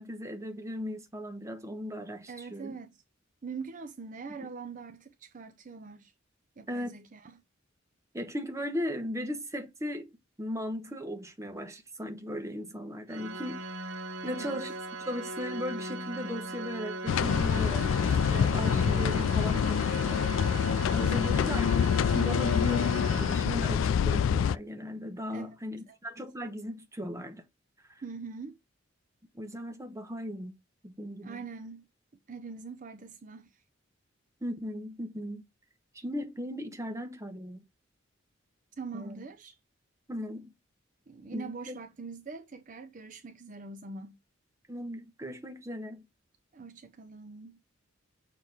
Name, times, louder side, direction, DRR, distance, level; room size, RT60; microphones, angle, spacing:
voice 1, 0.0-2.7 6.7-7.0 8.1-10.1 10.4-13.9 14.2-14.7 15.1-20.2 20.9-27.4 29.3-30.5 30.8-31.4 34.4-35.4 35.9-37.6 38.9-39.1 40.1-40.5 41.3-41.8 44.7-46.1, equal, 15° right, 0.9 m, -37 dB
voice 2, 2.3-3.0 3.4-6.1 6.6-7.4 14.2-14.7 21.0-21.4 25.3-25.5 25.9-26.0 28.0-28.6 31.2-31.9 32.3-33.6 38.8-39.6 41.1-44.2 46.5-47.6, right 4 dB, 40° right, 0.6 m, -43 dB
Organ, 13.1-23.9, right 1 dB, 90° right, 1.7 m, -39 dB
sound 1, 17.1-24.6, left 7 dB, 75° left, 0.3 m, -26 dB
6.6 x 2.9 x 5.0 m
head